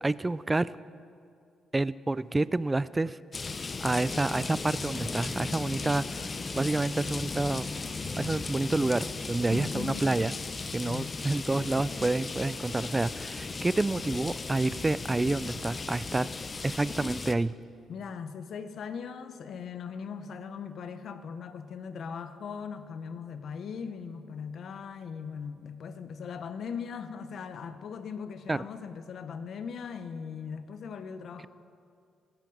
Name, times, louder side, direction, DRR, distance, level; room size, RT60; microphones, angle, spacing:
voice 1, 0.0-0.7 1.7-3.2 3.8-6.3 6.6-7.7 8.2-10.3 10.7-16.3 16.6-17.6 28.5-28.6, right 2 dB, 20° right, 18 dB, 0.3 m, -28 dB
sound 1, 3.3-17.4, left 4 dB, 30° left, 0.6 m, -36 dB
sound 2, 4.0-9.7 10.0-10.1, left 2 dB, 5° left, 0.9 m, -45 dB
voice 2, 9.5-10.1 10.8-11.2 17.9-31.5, left 6 dB, 60° left, 10 dB, 0.8 m, -39 dB
16.5 x 13.5 x 4.0 m, 2.3 s
cardioid pair, 90°, 0 cm